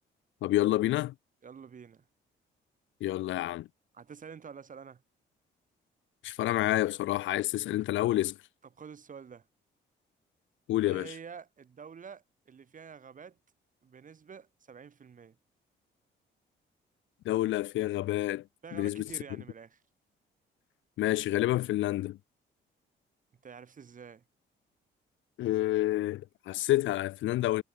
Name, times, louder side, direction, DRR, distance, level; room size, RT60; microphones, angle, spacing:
voice 1, 0.4-1.1 3.0-3.7 6.2-8.4 10.7-11.1 17.2-18.4 18.7-19.1 21.0-22.2 25.4-27.6, left 15 dB, 75° left, 0.6 m, -28 dB
voice 2, 1.4-2.0 3.9-5.0 8.8-9.4 10.8-13.4 13.8-15.3 18.6-19.8 23.4-24.2, right 6 dB, 40° right, 1.7 m, -48 dB
cardioid pair, 90°, 20 cm